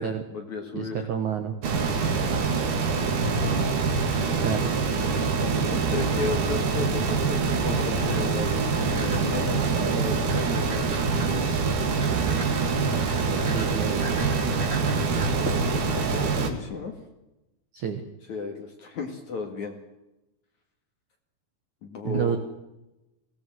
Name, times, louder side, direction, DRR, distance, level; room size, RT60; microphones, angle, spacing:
voice 1, 0.0-1.0 5.7-11.0 15.4-16.9 18.3-19.8 21.8-22.4, left 4 dB, 50° left, 4 dB, 2.6 m, -35 dB
voice 2, 0.7-1.5 4.4-4.7 12.8-14.3 17.7-18.0 22.0-22.4, right 8 dB, 90° right, 7 dB, 1.7 m, -30 dB
sound 1, 1.6-16.5, right 4 dB, 50° right, 2.7 m, -25 dB
sound 2, 7.8-16.2, right 2 dB, 20° right, 2.3 m, -39 dB
22.5 x 17.5 x 7.8 m, 0.97 s
omnidirectional pair, 5.9 m